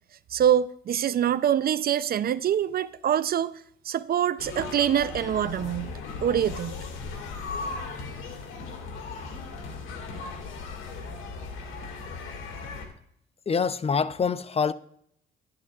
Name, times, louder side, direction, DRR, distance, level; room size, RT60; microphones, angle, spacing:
voice 1, 0.3-3.5 3.8-5.9 6.2-6.9, right 10 dB, 50° right, 0.4 m, -25 dB
sound 1, 4.4-12.9, left 4 dB, 85° left, 1.9 m, -37 dB
voice 2, 13.5-14.7, left 6 dB, 30° left, 0.5 m, -25 dB
11.5 x 11.0 x 2.3 m
cardioid pair, 90°, 20 cm